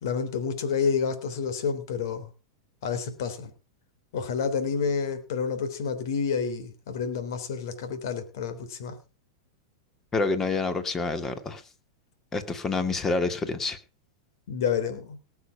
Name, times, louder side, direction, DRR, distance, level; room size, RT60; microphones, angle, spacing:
voice 1, 0.0-2.3 2.8-3.5 4.1-9.0 14.5-15.2, left 6 dB, 70° left, 10 dB, 3.6 m, -29 dB
voice 2, 10.1-11.6 12.3-13.8, left 3 dB, 20° left, 10 dB, 2.2 m, -27 dB
18.5 x 7.1 x 5.8 m, 0.33 s
hypercardioid pair, 130°, 2 cm